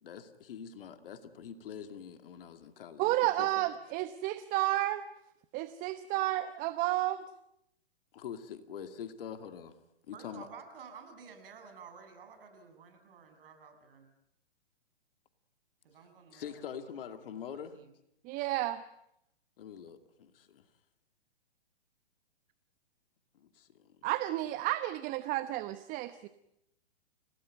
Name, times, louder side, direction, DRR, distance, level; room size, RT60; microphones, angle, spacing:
voice 1, 0.0-3.7 8.1-9.8 10.1-10.5 16.3-17.7 19.6-20.7 23.3-24.0, left 8 dB, 55° left, 8 dB, 2.7 m, -45 dB
voice 2, 3.0-5.0 5.5-7.2 18.2-18.8 24.0-26.3, right 16 dB, 25° right, 13 dB, 0.9 m, -31 dB
voice 3, 10.1-14.1 15.8-17.9, right 6 dB, 55° right, 6 dB, 6.9 m, -52 dB
29.5 x 18.0 x 9.3 m, 0.80 s
hypercardioid pair, 125°, 33 cm